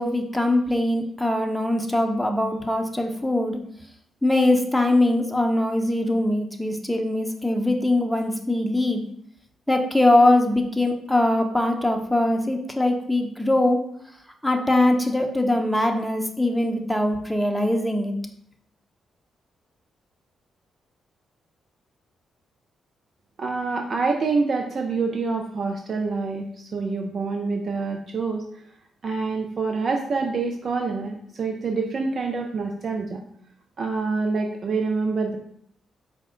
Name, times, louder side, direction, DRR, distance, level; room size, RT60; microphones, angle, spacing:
voice 1, 0.0-3.6 4.2-9.0 9.7-13.9 14.4-18.1, left 1 dB, 5° left, 3 dB, 0.7 m, -22 dB
voice 2, 23.4-28.6 29.0-33.2 33.8-35.4, right 4 dB, 55° right, 3 dB, 0.4 m, -26 dB
4.6 x 2.1 x 3.7 m, 0.68 s
hypercardioid pair, 45°, 0 cm